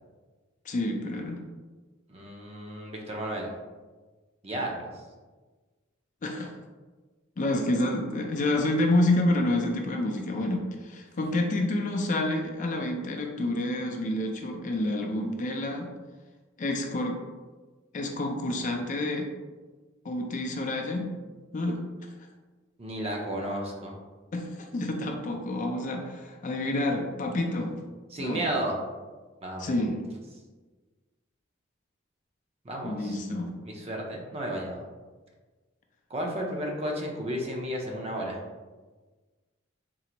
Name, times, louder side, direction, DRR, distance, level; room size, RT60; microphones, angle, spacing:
voice 1, 0.7-1.4 6.2-6.5 7.4-15.9 16.6-17.2 17.9-19.3 20.0-21.1 21.5-21.8 24.3-27.7 28.2-28.4 29.6-30.0 32.8-33.5, left 1 dB, 40° left, 2 dB, 0.4 m, -28 dB
voice 2, 2.1-3.5 4.4-5.1 22.8-24.0 28.1-28.8 29.4-29.8 32.6-33.2 33.6-34.8 36.1-38.4, right 1 dB, 30° right, -1 dB, 0.6 m, -33 dB
3.7 x 2.0 x 4.3 m, 1.3 s
head